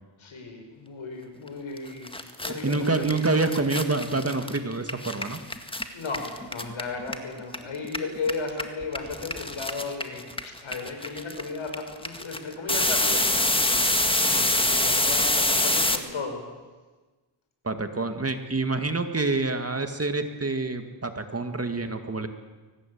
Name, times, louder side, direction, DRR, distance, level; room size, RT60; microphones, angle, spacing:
voice 1, 0.2-2.1 2.4-3.1 5.9-10.3 10.6-16.4, left 4 dB, 75° left, 4 dB, 6.1 m, -35 dB
sound 1, 1.8-1.9 2.1-7.6 7.8-16.0, left 1 dB, 10° left, 1.9 m, -25 dB
voice 2, 2.6-5.4 17.6-22.3, right 3 dB, 30° right, 7 dB, 2.1 m, -27 dB
23.5 x 19.0 x 8.7 m, 1.3 s
wide cardioid pair, 95°, 48 cm